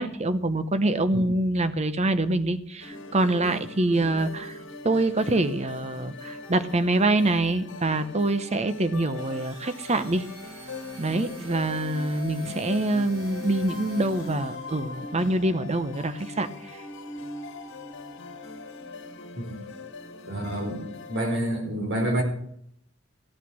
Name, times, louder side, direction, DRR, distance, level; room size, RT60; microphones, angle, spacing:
voice 1, 0.0-4.6 4.8-10.2 11.0-16.5, right 2 dB, 30° right, 11 dB, 0.9 m, -25 dB
sound 1, 2.8-21.2, left 3 dB, 60° left, 1.6 m, -40 dB
sound 2, 9.1-14.9, right 2 dB, 80° right, 7.0 m, -49 dB
voice 2, 20.3-22.2, right 1 dB, 55° right, 2 dB, 4.1 m, -28 dB
15.5 x 9.0 x 6.2 m, 0.71 s
head